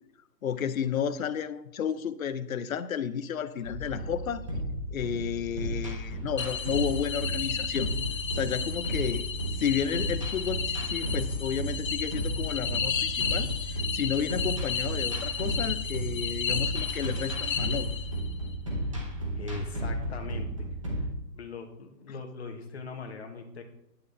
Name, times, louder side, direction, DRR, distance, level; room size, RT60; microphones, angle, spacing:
voice 1, 0.4-4.4 4.9-7.9 8.3-9.3 9.6-17.9, left 8 dB, 55° left, 12 dB, 0.6 m, -32 dB
sound 1, 3.6-21.1, right 1 dB, 20° right, 0.8 m, -33 dB
sound 2, 6.4-18.3, left 7 dB, 80° left, 0.9 m, -33 dB
voice 2, 19.3-20.7 21.3-23.6, left 4 dB, 40° left, 4 dB, 1.1 m, -40 dB
9.5 x 8.6 x 2.7 m, 0.82 s
hypercardioid pair, 165°, 50 cm